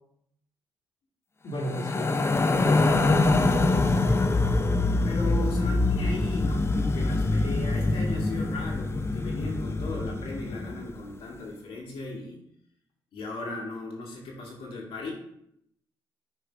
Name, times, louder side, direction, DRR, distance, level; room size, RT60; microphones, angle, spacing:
voice 1, 1.4-3.6 5.2-5.4, left 1 dB, 55° left, -2 dB, 1.6 m, -35 dB
sound 1, 1.6-10.9, left 2 dB, 25° left, 0.6 m, -24 dB
voice 2, 5.0-12.4 13.1-15.1, left 3 dB, 75° left, -2 dB, 1.8 m, -37 dB
6.4 x 3.2 x 4.9 m, 0.74 s
cardioid pair, 75°, 9 cm